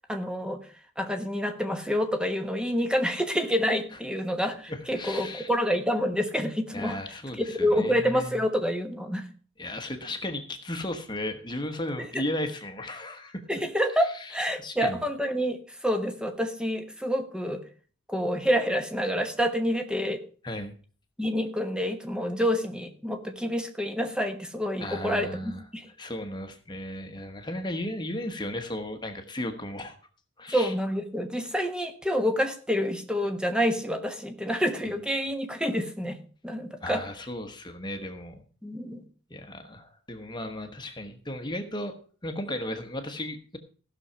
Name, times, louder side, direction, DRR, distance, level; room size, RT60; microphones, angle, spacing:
voice 1, 0.1-0.6 1.0-7.0 7.3-9.2 12.0-12.2 13.5-17.6 18.1-20.2 21.2-25.9 30.5-36.2 36.4-37.0 38.6-39.0, equal, 5° right, 7 dB, 1.1 m, -28 dB
voice 2, 4.7-5.5 6.7-8.4 9.6-13.4 14.1-15.0 20.4-20.7 24.8-25.6 26.0-30.0 30.4-30.7 34.8-35.0 36.8-38.4 39.3-41.9 42.2-43.6, left 1 dB, 20° left, 6 dB, 1.1 m, -35 dB
15.5 x 6.4 x 5.6 m, 0.41 s
head